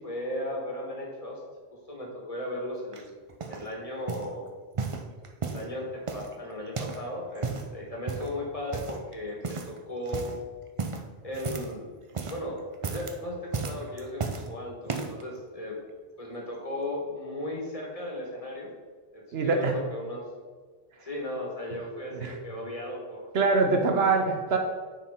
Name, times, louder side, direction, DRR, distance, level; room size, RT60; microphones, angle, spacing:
voice 1, 0.0-1.4 1.9-3.1 3.5-4.5 5.5-10.3 11.2-11.9 12.3-15.8 16.2-18.7 19.1-20.2 21.0-23.3 23.9-24.3, left 1 dB, 35° left, -1 dB, 1.5 m, -36 dB
sound 1, 2.9-3.7 4.1-4.3 4.7-5.7 6.1-7.1 7.3-7.7 8.1-8.4 8.7-9.1 9.4-9.8 10.0-10.4 10.8-11.8 12.0-12.4 12.7-13.2 13.5-14.5 14.9-15.2 15.9-16.0, right 4 dB, 40° right, 0.5 m, -34 dB
voice 2, 19.3-19.7 22.1-22.3 23.3-24.6, right 4 dB, 75° right, 3 dB, 1.0 m, -24 dB
9.2 x 4.5 x 3.6 m, 1.5 s
omnidirectional pair, 1.0 m